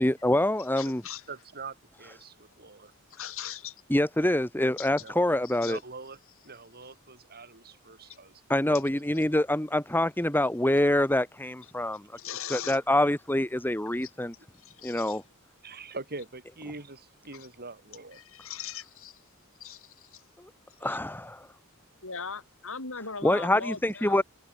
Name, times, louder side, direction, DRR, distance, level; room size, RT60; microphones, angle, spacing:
voice 1, 0.0-1.0 3.9-5.8 8.5-12.0 12.5-14.3 14.8-15.2 20.8-21.5 23.2-24.2, left 1 dB, 10° left, 1.9 m, -25 dB
voice 2, 0.6-1.3 3.1-3.8 4.8-4.9 5.4-5.7 8.1-8.2 8.7-8.8 12.2-12.8 14.0-14.1 14.5-15.2 17.3-17.5 18.1-19.2 19.6-20.2 20.7-21.0 22.0-24.2, left 6 dB, 65° left, 7.5 m, -40 dB
voice 3, 1.3-2.9 5.0-5.1 5.6-8.4 8.7-8.8 15.6-18.2, right 3 dB, 45° right, 6.9 m, -43 dB
head